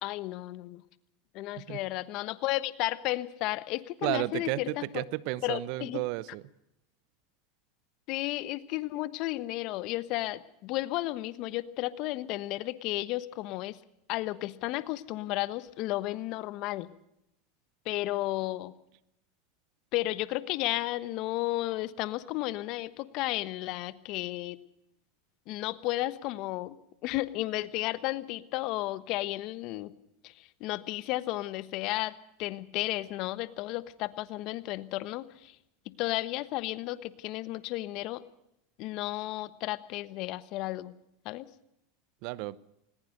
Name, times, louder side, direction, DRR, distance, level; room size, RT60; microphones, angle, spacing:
voice 1, 0.0-0.8 1.3-5.0 5.4-6.0 8.1-13.8 14.1-16.9 17.8-18.7 19.9-24.6 25.5-26.7 27.0-29.9 30.2-35.6 35.8-38.2 38.8-41.0 41.2-41.5, left 17 dB, 55° left, 1.2 m, -33 dB
voice 2, 4.0-6.4 42.2-42.6, right 19 dB, 60° right, 0.8 m, -33 dB
20.0 x 19.5 x 6.6 m
hypercardioid pair, 100°, 0 cm